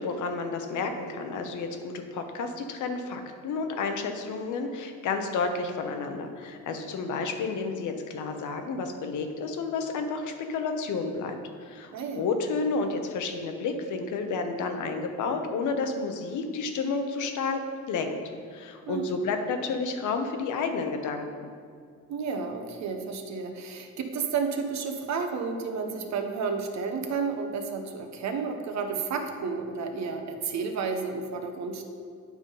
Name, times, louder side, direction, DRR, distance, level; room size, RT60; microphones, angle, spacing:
voice 1, 0.0-17.6 17.9-18.2 18.5-21.5, left 4 dB, 75° left, 5 dB, 0.9 m, -31 dB
voice 2, 11.9-12.3 18.9-19.3 22.1-31.8, right 5 dB, 65° right, 5 dB, 0.9 m, -31 dB
9.0 x 3.6 x 5.3 m, 2.1 s
cardioid pair, 90°, 30 cm